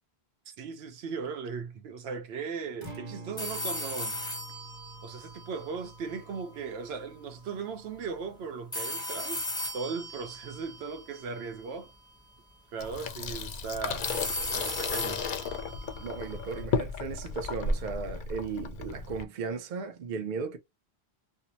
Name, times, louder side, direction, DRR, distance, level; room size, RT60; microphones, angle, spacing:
voice 1, 0.5-4.2 5.0-11.9 12.7-15.3, right 5 dB, 80° right, 0.8 m, -38 dB
Acoustic guitar, 2.8-10.9, right 3 dB, 20° right, 1.1 m, -50 dB
sound 1, 3.4-6.4 8.7-11.9 14.0-16.6, left 2 dB, 5° left, 0.5 m, -37 dB
Water tap faucet / Sink (filling or washing), 12.8-19.2, left 4 dB, 60° left, 0.6 m, -34 dB
voice 2, 16.0-20.6, right 5 dB, 55° right, 0.7 m, -36 dB
2.7 x 2.1 x 2.7 m
omnidirectional pair, 1.0 m